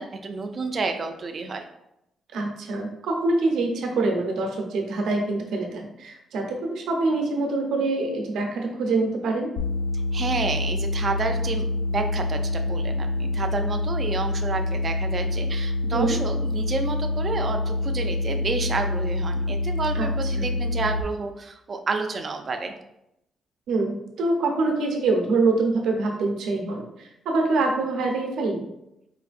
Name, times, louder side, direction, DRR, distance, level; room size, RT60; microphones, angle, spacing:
voice 1, 0.0-1.6 10.1-22.8, right 3 dB, 30° right, 5 dB, 0.4 m, -30 dB
voice 2, 2.3-9.5 15.9-16.2 19.9-20.1 20.4-20.5 23.7-28.7, right 3 dB, 85° right, 1 dB, 0.8 m, -25 dB
sound 1, 9.6-21.0, left 1 dB, 90° left, 0.5 m, -26 dB
4.7 x 3.2 x 2.5 m, 0.84 s
cardioid pair, 170°, 0 cm